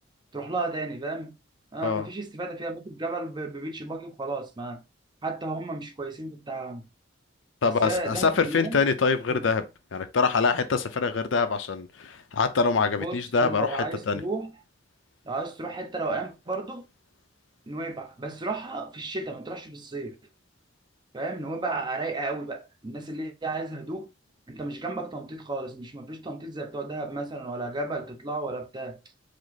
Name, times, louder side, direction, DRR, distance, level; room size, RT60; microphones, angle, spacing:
voice 1, 0.3-1.4 1.7-4.8 5.2-6.9 7.6-8.8 9.3-9.4 13.0-14.5 15.2-16.8 17.7-20.2 21.1-24.1 24.5-29.0, right 2 dB, 25° right, 0.6 m, -33 dB
voice 2, 7.6-9.6 9.9-13.8 14.1-14.2, left 4 dB, 70° left, 0.6 m, -24 dB
5.0 x 2.0 x 4.0 m
head